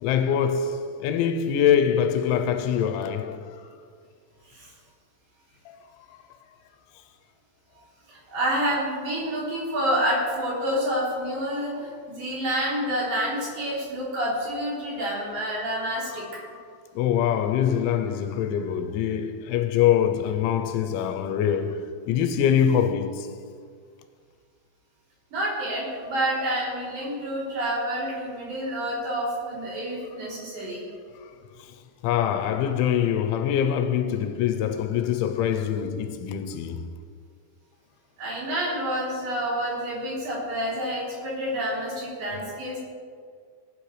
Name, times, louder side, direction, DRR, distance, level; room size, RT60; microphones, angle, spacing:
voice 1, 0.0-3.5 5.7-5.8 17.0-23.3 32.0-36.8, left 9 dB, 85° left, 3.0 m, -24 dB
voice 2, 8.1-16.3 25.3-30.8 38.2-42.8, equal, 50° right, 5.0 m, -28 dB
18.5 x 9.3 x 3.3 m
omnidirectional pair, 5.4 m